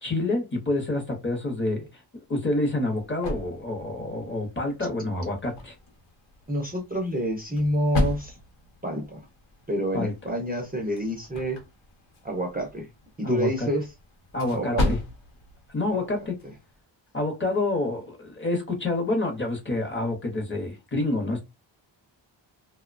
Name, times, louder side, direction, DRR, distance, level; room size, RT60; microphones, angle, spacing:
voice 1, 0.0-2.0 2.3-5.7 9.9-10.1 13.2-13.7 14.3-15.0 15.7-16.4 17.1-21.4, left 2 dB, 25° left, 0.6 m, -28 dB
sound 1, 2.3-16.8, left 1 dB, 85° left, 0.9 m, -36 dB
voice 2, 6.5-8.4 8.8-9.2 9.7-11.6 12.2-12.9 13.2-13.9 14.5-14.9 15.9-16.1, equal, 20° right, 0.4 m, -28 dB
2.7 x 2.1 x 2.4 m
wide cardioid pair, 180°, 47 cm